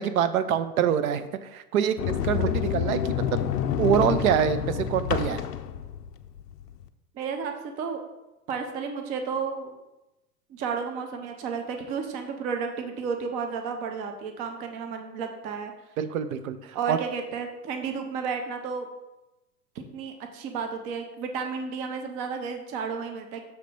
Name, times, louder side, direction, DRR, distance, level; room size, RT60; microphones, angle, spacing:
voice 1, 0.0-3.4 3.8-5.4 16.0-17.0, right 9 dB, 65° right, 11 dB, 0.7 m, -25 dB
Sliding door, 2.0-6.8, left 9 dB, 75° left, 0.6 m, -28 dB
voice 2, 7.1-8.0 8.5-9.7 10.5-15.7 16.7-18.9 19.9-23.4, right 5 dB, 20° right, 5 dB, 0.3 m, -32 dB
6.5 x 3.3 x 5.2 m, 0.99 s
hypercardioid pair, 100°, 47 cm